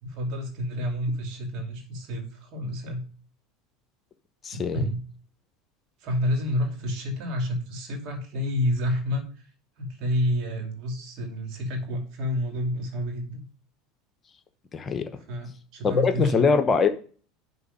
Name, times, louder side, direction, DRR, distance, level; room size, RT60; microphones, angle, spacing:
voice 1, 0.0-3.0 4.5-5.0 6.0-9.5 9.8-13.4 15.3-16.5, left 1 dB, 55° right, 3 dB, 2.7 m, -29 dB
voice 2, 4.4-4.8 14.7-15.1 15.8-16.9, left 5 dB, 30° left, 9 dB, 0.9 m, -22 dB
11.0 x 3.7 x 5.1 m, 0.41 s
figure-of-eight pair, 75°, 0 cm